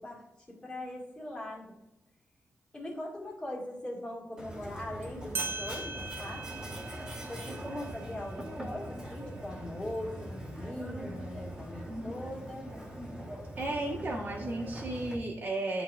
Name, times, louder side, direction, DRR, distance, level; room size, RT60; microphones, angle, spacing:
voice 1, 0.0-1.7 2.7-6.8 7.3-12.7, left 1 dB, 20° left, -3 dB, 2.0 m, -41 dB
Mechanisms, 4.4-15.2, equal, 15° right, 1.5 m, -42 dB
sound 1, 5.0-5.1 5.3-10.4, right 4 dB, 50° right, 0.7 m, -42 dB
voice 2, 13.6-15.8, right 2 dB, 35° right, -5 dB, 1.2 m, -34 dB
11.0 x 3.9 x 2.4 m, 0.93 s
wide cardioid pair, 155°, 5 cm